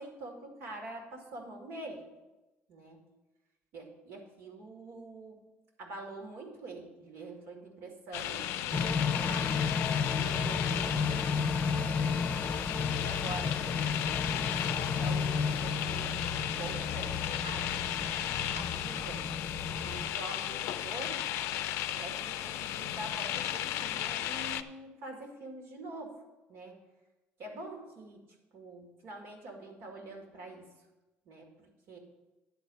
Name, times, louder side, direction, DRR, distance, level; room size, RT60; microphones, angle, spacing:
voice 1, 0.0-2.1 2.7-3.1 3.7-5.4 5.8-9.6 10.0-11.2 11.8-12.2 13.0-13.8 14.3-18.2 18.5-19.3 19.8-21.3 21.9-26.2 26.5-26.8 27.4-28.2 28.5-30.7 31.3-32.0, right 2 dB, 75° right, 2 dB, 2.1 m, -45 dB
sound 1, 8.1-24.6, left 12 dB, 80° left, 0.4 m, -35 dB
sound 2, 8.7-20.1, left 5 dB, 30° left, 0.6 m, -33 dB
10.5 x 4.3 x 7.6 m, 1.1 s
cardioid pair, 110°, 4 cm